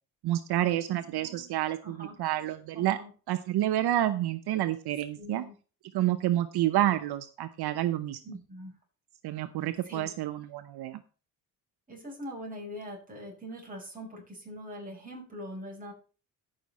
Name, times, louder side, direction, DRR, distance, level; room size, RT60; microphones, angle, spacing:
voice 1, 0.2-3.0 3.3-5.4 5.9-8.2 9.2-11.0, right 13 dB, 75° right, 12 dB, 0.9 m, -29 dB
voice 2, 1.1-2.2 2.7-3.1 5.2-5.5 8.2-8.7 9.8-10.1 11.9-15.9, equal, 20° right, -1 dB, 7.1 m, -43 dB
14.0 x 6.4 x 4.2 m, 0.36 s
cardioid pair, 100°, 39 cm